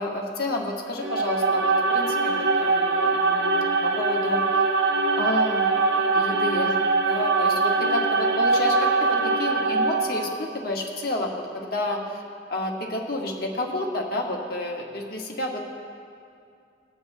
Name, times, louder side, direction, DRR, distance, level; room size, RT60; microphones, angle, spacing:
voice 1, 0.0-4.4 5.2-5.7 6.1-6.8 7.1-12.2 12.5-15.7, left 1 dB, 50° left, 0 dB, 1.2 m, -30 dB
sound 1, 1.0-10.5, right 3 dB, 65° right, 0.8 m, -22 dB
20.0 x 7.8 x 2.7 m, 2.4 s
head